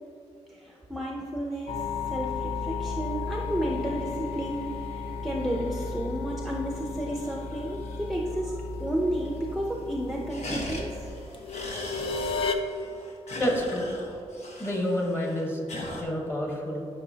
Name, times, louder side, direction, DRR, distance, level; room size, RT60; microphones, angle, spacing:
voice 1, 0.5-4.7 4.9-11.1, right 1 dB, ahead, -1 dB, 0.6 m, -32 dB
sound 1, 1.7-12.5, left 4 dB, 50° left, 0.5 m, -34 dB
sound 2, 3.1-8.4 8.7-8.8 9.1-9.6 9.9-16.0, left 1 dB, 70° left, 1.3 m, -41 dB
voice 2, 13.3-13.9 14.6-15.6 16.0-16.8, equal, 20° left, -1 dB, 1.4 m, -28 dB
11.0 x 5.5 x 2.8 m, 2.8 s
wide cardioid pair, 130°, 11 cm